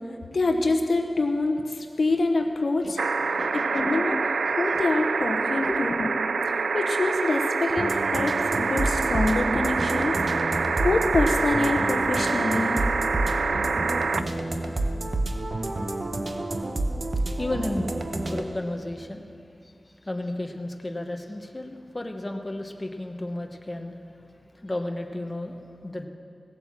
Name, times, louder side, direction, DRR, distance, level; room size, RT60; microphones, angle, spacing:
voice 1, 0.3-3.0 3.5-4.3 4.6-6.2 6.5-10.2 10.8-12.8, left 2 dB, 70° left, 3 dB, 1.0 m, -26 dB
sound 1, 3.0-14.2 15.7-15.8, right 4 dB, 90° right, 0.4 m, -26 dB
voice 2, 3.2-3.9 4.7-4.8 5.7-5.8 17.1-18.0 18.2-19.3 19.6-24.3 24.5-26.1, left 1 dB, 25° left, 4 dB, 1.1 m, -33 dB
sound 2, 7.7-18.4, right 2 dB, 50° right, 1.1 m, -29 dB
17.5 x 7.9 x 7.4 m, 2.5 s
wide cardioid pair, 65°, 0 cm